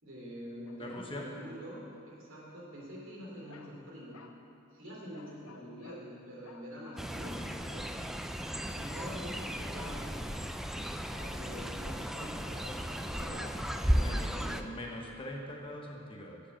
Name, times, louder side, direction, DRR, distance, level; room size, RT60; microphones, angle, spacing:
voice 1, 0.0-4.2 4.7-7.9 8.6-10.2 11.1-13.5 13.8-14.7, equal, 60° right, -4 dB, 3.0 m, -46 dB
sound 1, 0.7-1.2 1.8-1.9 3.5-3.8 4.1-4.4 5.1-6.0 6.4-8.1 8.9-9.2 9.8-10.3 11.1-11.4 13.0-13.9, left 4 dB, 70° left, 0.8 m, -55 dB
voice 2, 0.8-1.3 13.9-14.3 14.6-16.4, left 1 dB, 25° left, 0 dB, 1.0 m, -42 dB
Fowl, 7.0-14.6, equal, ahead, 0.3 m, -35 dB
9.7 x 7.4 x 7.5 m, 2.7 s
head